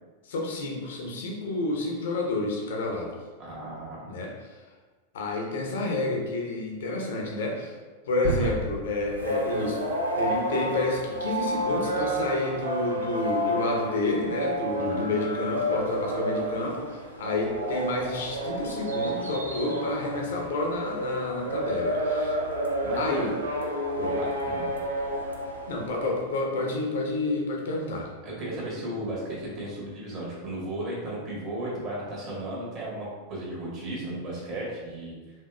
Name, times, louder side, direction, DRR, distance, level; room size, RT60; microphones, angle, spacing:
voice 1, 0.2-3.2 4.0-4.5 5.1-7.8 8.1-22.3 23.0-23.4 24.0-24.2 25.7-28.1, left 2 dB, 60° left, 0 dB, 0.7 m, -30 dB
voice 2, 3.4-4.0 8.4-8.5 14.7-15.0 22.8-23.2 24.2-24.7 28.2-35.1, right 1 dB, 35° right, -5 dB, 1.3 m, -35 dB
sound 1, 8.2-10.2 10.6-10.7, right 2 dB, 60° right, 0.8 m, -33 dB
sound 2, 9.1-26.1, equal, 75° right, 0.5 m, -30 dB
4.4 x 2.8 x 2.3 m, 1.3 s
figure-of-eight pair, 90°, 0 cm